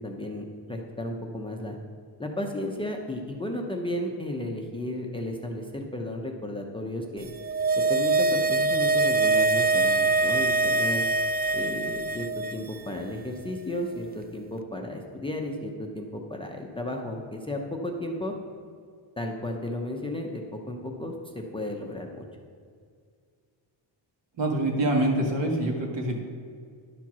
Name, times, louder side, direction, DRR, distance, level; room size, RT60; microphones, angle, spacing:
voice 1, 0.0-1.8 2.2-7.3 7.8-11.0 11.5-18.3 19.2-22.2, left 1 dB, 10° left, 2 dB, 0.7 m, -34 dB
sound 1, 7.3-12.8 13.0-13.1, right 3 dB, 25° right, 0.3 m, -24 dB
voice 2, 24.4-26.2, right 1 dB, 65° right, 0 dB, 1.8 m, -25 dB
11.0 x 4.4 x 6.1 m, 2.1 s
cardioid pair, 120°, 48 cm